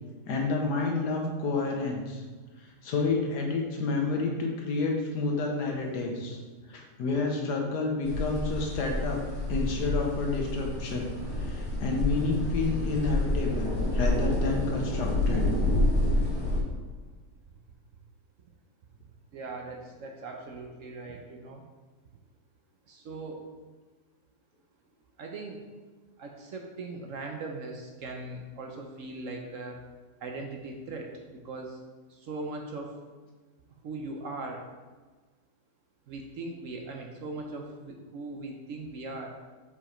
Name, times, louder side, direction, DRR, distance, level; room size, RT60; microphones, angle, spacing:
voice 1, 0.3-2.2 2.8-6.4 6.7-9.2 9.5-11.1 11.4-15.5, left 3 dB, 80° left, 1 dB, 1.6 m, -29 dB
sound 1, 8.0-16.6, left 1 dB, 40° left, 2.0 m, -28 dB
voice 2, 19.3-21.6 22.9-23.4 25.2-25.6 26.2-29.8 30.2-31.8 32.1-32.9 33.8-34.6 36.1-39.3, right 3 dB, 65° right, 2 dB, 0.9 m, -39 dB
5.0 x 4.9 x 4.3 m, 1.4 s
omnidirectional pair, 1.8 m